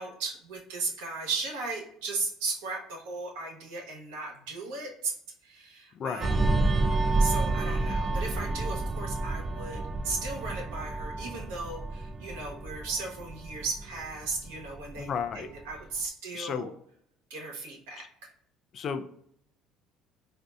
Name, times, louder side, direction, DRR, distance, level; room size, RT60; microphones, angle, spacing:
voice 1, 0.0-5.1 5.4-6.6 7.2-16.7 17.3-18.3, right 3 dB, 85° right, -1 dB, 1.0 m, -36 dB
voice 2, 5.9-6.3 15.0-15.5 16.3-16.7 18.7-19.1, left 6 dB, 50° left, 9 dB, 0.4 m, -33 dB
sound 1, 6.2-15.2 15.6-15.8, right 2 dB, 35° right, 0.4 m, -29 dB
4.0 x 2.6 x 2.3 m, 0.66 s
supercardioid pair, 75°, 0 cm